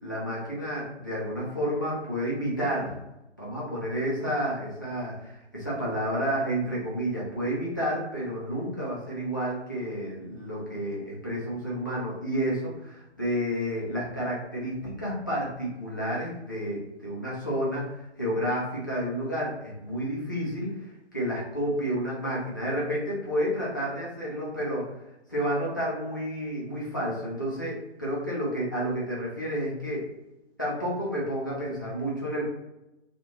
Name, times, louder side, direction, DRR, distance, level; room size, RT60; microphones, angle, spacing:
voice 1, 0.0-2.9 3.4-25.0 25.3-30.1 30.6-32.4, equal, 20° left, -7 dB, 0.5 m, -30 dB
2.8 x 2.4 x 2.8 m, 0.92 s
figure-of-eight pair, 150°, 35 cm